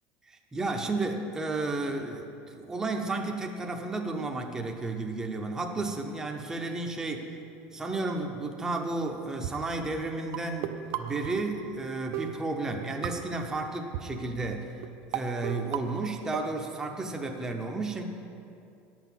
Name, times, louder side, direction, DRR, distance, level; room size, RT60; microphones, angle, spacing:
voice 1, 0.3-7.3 7.7-14.7 15.1-18.0, right 3 dB, 10° right, 2 dB, 0.7 m, -32 dB
sound 1, 9.4-9.5 10.3-11.8 12.1-13.5 13.9-14.0 14.8-14.9 15.1-16.7, right 10 dB, 55° right, 0.6 m, -36 dB
10.0 x 6.1 x 7.3 m, 2.6 s
cardioid pair, 155°, 5 cm